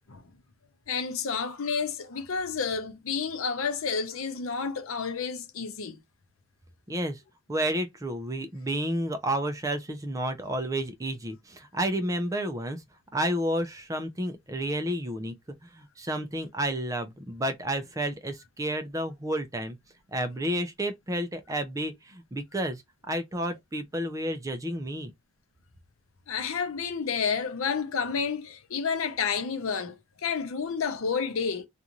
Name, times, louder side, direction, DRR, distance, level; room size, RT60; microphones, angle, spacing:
voice 1, 0.9-6.0 26.3-31.7, left 5 dB, 85° left, 0.6 m, -30 dB
voice 2, 6.9-7.2 7.5-12.8 13.1-15.3 15.6-19.8 20.1-22.8 23.1-25.1, right 1 dB, 15° right, 0.4 m, -31 dB
2.6 x 2.4 x 2.9 m
head